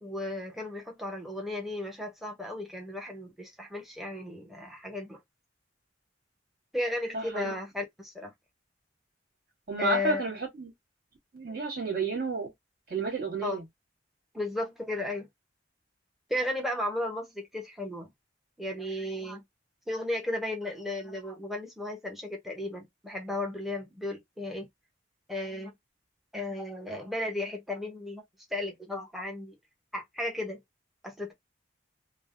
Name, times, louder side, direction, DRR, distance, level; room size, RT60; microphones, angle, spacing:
voice 1, 0.0-5.2 6.7-8.3 9.8-10.2 13.4-13.6 14.3-15.3 16.3-18.1 18.6-19.4 19.9-24.7 25.3-25.7 26.3-28.2 28.5-29.5 29.9-30.6 31.0-31.3, left 2 dB, ahead, 0.7 m, -34 dB
voice 2, 7.1-7.5 9.7-10.7 11.3-12.5 12.9-13.6, right 3 dB, 50° right, 1.7 m, -31 dB
3.3 x 2.0 x 2.4 m
head